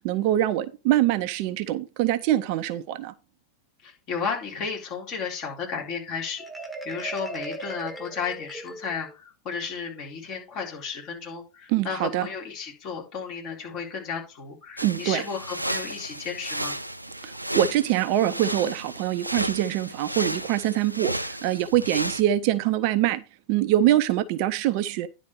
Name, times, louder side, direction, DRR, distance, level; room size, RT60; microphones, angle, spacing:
voice 1, 0.0-3.1 11.7-12.3 14.8-15.2 17.2-23.2 23.5-25.1, right 13 dB, 45° right, 0.6 m, -24 dB
voice 2, 3.8-6.4 6.8-16.8, left 6 dB, 40° left, 4.1 m, -33 dB
Marimba xylophone, 6.4-9.1, right 2 dB, ahead, 1.6 m, -38 dB
sound 1, 14.8-22.2, right 1 dB, 85° right, 0.4 m, -33 dB
10.5 x 4.0 x 6.2 m
figure-of-eight pair, 90°, 0 cm